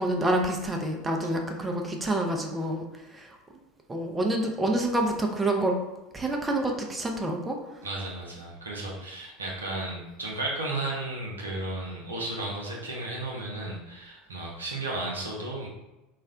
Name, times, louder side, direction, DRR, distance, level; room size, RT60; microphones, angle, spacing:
voice 1, 0.0-3.4 3.9-5.7 6.1-7.6, right 1 dB, 15° right, 2 dB, 0.4 m, -27 dB
voice 2, 7.8-15.7, right 2 dB, 85° right, -3 dB, 0.6 m, -34 dB
2.4 x 2.0 x 3.6 m, 1.1 s
figure-of-eight pair, 75°, 0 cm